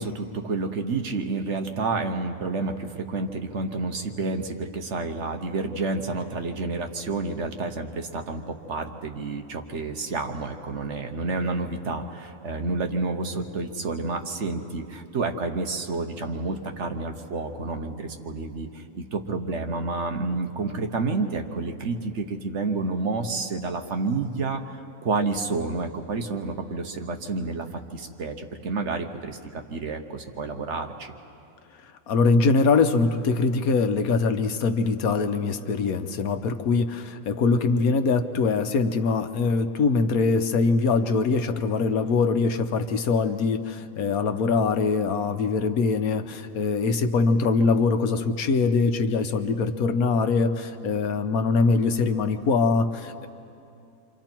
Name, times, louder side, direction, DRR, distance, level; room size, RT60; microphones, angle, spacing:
voice 1, 0.0-24.8 25.0-31.1, right 3 dB, 55° right, 5 dB, 1.3 m, -29 dB
voice 2, 32.1-53.3, left 4 dB, 85° left, 8 dB, 1.4 m, -23 dB
29.0 x 25.5 x 4.5 m, 2.6 s
omnidirectional pair, 1.5 m